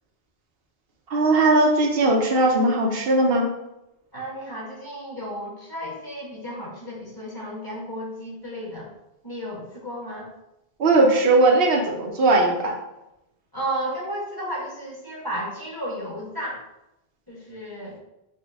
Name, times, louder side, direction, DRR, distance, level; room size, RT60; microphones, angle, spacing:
voice 1, 1.1-3.5 10.8-12.7, right 2 dB, 70° right, 1 dB, 0.9 m, -19 dB
voice 2, 4.1-8.9 9.2-10.3 13.5-16.6 17.3-18.0, equal, 20° left, -5 dB, 1.3 m, -33 dB
5.8 x 2.2 x 3.4 m, 0.90 s
omnidirectional pair, 1.0 m